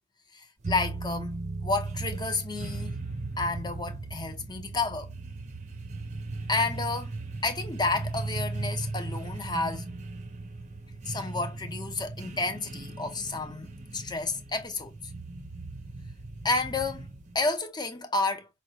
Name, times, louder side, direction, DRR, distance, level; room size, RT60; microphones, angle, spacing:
voice 1, 0.3-1.4 1.6-3.0 3.4-5.1 6.5-7.1 7.4-9.8 11.1-14.9 16.4-17.1 17.3-18.5, left 3 dB, 20° left, 0.8 m, -31 dB
sound 1, 0.6-17.4, right 2 dB, 35° right, 0.7 m, -37 dB
5.3 x 2.4 x 2.9 m
head